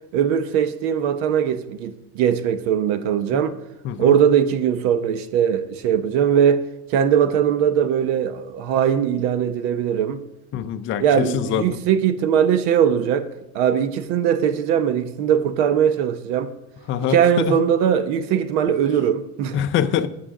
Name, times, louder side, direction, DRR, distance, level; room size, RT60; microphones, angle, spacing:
voice 1, 0.1-3.6 4.0-6.6 6.9-10.2 11.0-13.3 13.5-16.5 17.1-19.6, right 8 dB, 90° right, 0.9 m, -20 dB
voice 2, 3.8-4.2 10.5-11.6 16.9-17.6 19.5-20.1, left 9 dB, 30° left, 0.5 m, -24 dB
12.5 x 7.7 x 3.7 m
cardioid pair, 175°, 39 cm